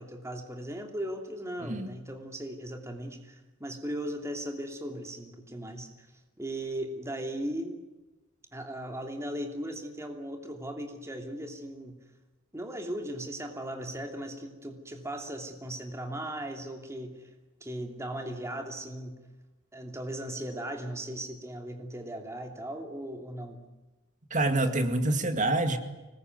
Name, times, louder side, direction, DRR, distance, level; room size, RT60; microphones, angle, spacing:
voice 1, 0.0-6.1 6.4-7.7 8.5-12.0 12.5-17.3 17.6-19.2 19.7-23.6, right 1 dB, 15° right, 4 dB, 2.9 m, -37 dB
voice 2, 24.3-25.8, right 2 dB, 35° right, 8 dB, 2.3 m, -26 dB
25.0 x 21.0 x 9.4 m, 1.1 s
head